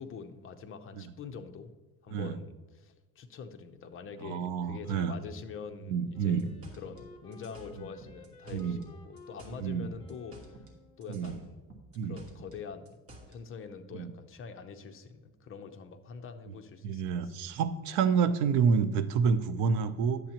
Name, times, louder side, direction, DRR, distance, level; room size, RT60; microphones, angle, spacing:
voice 1, 0.0-1.7 2.0-6.5 6.8-10.6 11.0-11.6 12.0-13.0 13.3-17.3, left 6 dB, 35° left, 7 dB, 0.7 m, -45 dB
voice 2, 4.2-5.1 5.8-6.5 7.7-7.9 8.5-8.8 9.6-9.9 11.1-11.4 12.0-12.2 13.9-14.1 16.8-20.2, right 6 dB, 90° right, 12 dB, 0.8 m, -29 dB
Wind instrument woodwind instrument, 6.1-11.2, left 4 dB, 10° left, 1.1 m, -54 dB
sound 1, 6.2-8.9 9.2-10.8 11.0-13.4, right 1 dB, 35° right, 1.7 m, -51 dB
10.5 x 7.9 x 2.9 m, 1.2 s
cardioid pair, 145°, 39 cm